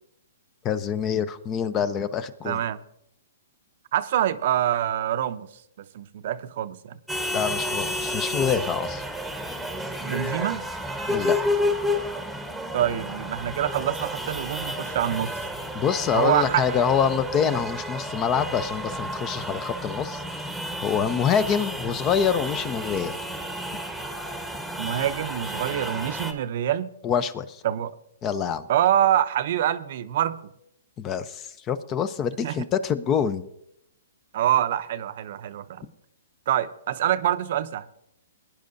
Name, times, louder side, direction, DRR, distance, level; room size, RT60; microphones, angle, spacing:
voice 1, 0.6-2.6 7.3-9.0 11.1-11.4 15.7-20.5 20.8-23.2 27.0-27.6 28.2-28.7 31.0-33.4, left 7 dB, 25° left, 0.6 m, -26 dB
voice 2, 2.4-2.8 3.9-5.5 5.8-7.0 10.0-10.7 12.7-15.3 16.1-16.8 24.8-26.9 27.6-27.9 28.7-30.5 32.4-32.6 34.3-35.9 36.5-37.9, right 11 dB, 55° right, 0.6 m, -25 dB
sound 1, 7.1-26.3, left 1 dB, ahead, 1.1 m, -31 dB
21.0 x 10.0 x 2.6 m
hypercardioid pair, 140°, 0 cm